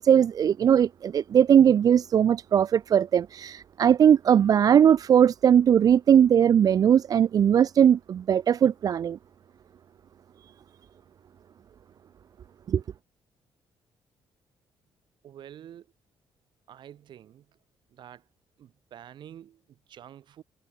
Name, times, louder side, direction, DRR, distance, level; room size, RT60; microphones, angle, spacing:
voice 1, 0.0-9.2 12.7-12.8, right 8 dB, 45° right, 0.5 m, -19 dB
voice 2, 15.2-15.9 16.7-17.5 17.9-18.2 18.6-20.4, right 10 dB, 60° right, 2.2 m, -48 dB
cardioid pair, 150°, 9 cm